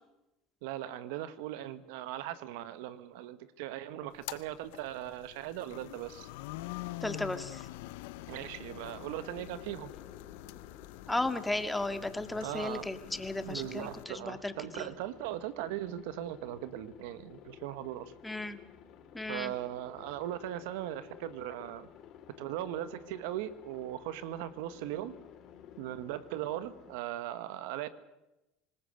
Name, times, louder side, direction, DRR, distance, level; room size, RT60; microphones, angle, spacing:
voice 1, 0.6-6.3 8.3-9.9 12.4-12.8 13.4-18.1 19.3-21.9 22.4-25.1 25.8-27.9, right 13 dB, 75° right, 14 dB, 1.4 m, -39 dB
sound 1, 4.1-14.0, left 17 dB, 80° left, 0.8 m, -46 dB
voice 2, 7.0-7.7 11.1-14.9 18.2-18.6 19.1-19.5, left 2 dB, 10° left, 9 dB, 2.1 m, -35 dB
Aircraft, 8.7-27.0, left 9 dB, 55° left, 3.2 m, -53 dB
26.0 x 20.0 x 6.6 m, 0.95 s
supercardioid pair, 95°, 0 cm